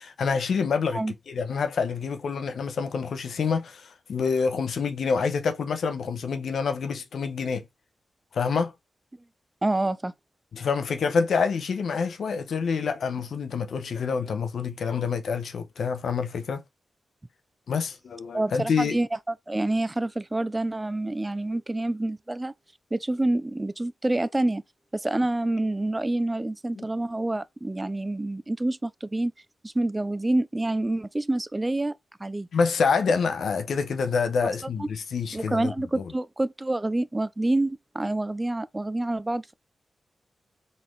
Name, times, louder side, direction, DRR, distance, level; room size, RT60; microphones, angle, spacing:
voice 1, 0.0-7.7 8.3-8.7 10.5-16.6 17.7-19.0 26.8-26.9 32.5-36.1, left 5 dB, 80° left, 0.9 m, -27 dB
voice 2, 9.6-10.1 18.3-19.1 19.5-22.5 22.9-24.6 24.9-29.3 29.6-32.5 34.8-34.9 35.3-39.5, right 2 dB, 15° right, 0.4 m, -27 dB
4.2 x 3.9 x 3.1 m
wide cardioid pair, 125°, 0 cm